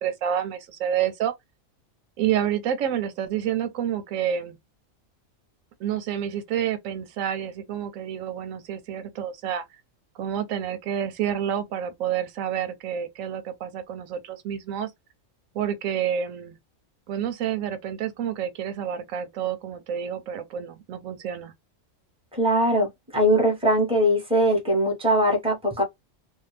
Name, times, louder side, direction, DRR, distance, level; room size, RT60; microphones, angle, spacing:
voice 1, 0.0-1.3 2.2-4.6 5.8-9.6 10.1-14.9 15.5-16.6 17.1-21.5, right 9 dB, 90° right, 1.0 m, -29 dB
voice 2, 22.3-25.8, equal, 5° right, 1.1 m, -21 dB
2.7 x 2.2 x 3.2 m
omnidirectional pair, 1.3 m